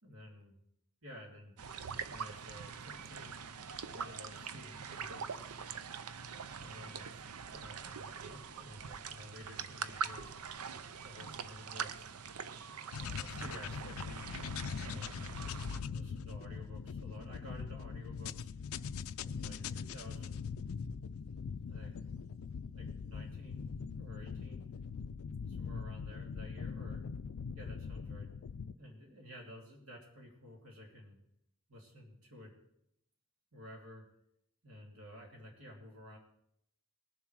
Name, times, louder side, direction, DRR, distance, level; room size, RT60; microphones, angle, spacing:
voice 1, 0.0-0.5 1.0-1.5 2.1-3.4 3.8-5.6 6.4-7.1 7.4-10.3 11.0-12.1 12.9-14.3 14.8-15.3 15.6-18.5 19.2-20.5 21.7-21.9 22.7-24.7 25.5-27.1 27.5-28.3 28.8-31.2 31.7-32.5 33.5-34.1 34.6-36.2, left 1 dB, 65° right, -1 dB, 2.7 m, -52 dB
sound 1, 1.6-15.8, right 6 dB, 85° right, 0.7 m, -43 dB
sound 2, 12.9-28.7, left 6 dB, 70° left, 0.4 m, -42 dB
19.5 x 7.3 x 4.7 m, 0.77 s
head